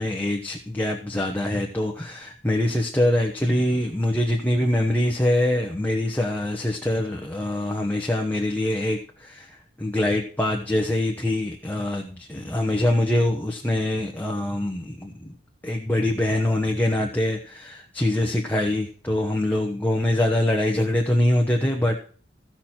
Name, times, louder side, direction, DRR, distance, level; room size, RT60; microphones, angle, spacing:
voice 1, 0.0-15.3 15.6-22.0, left 1 dB, 10° left, 1 dB, 1.0 m, -24 dB
15.0 x 6.1 x 4.4 m, 0.43 s
head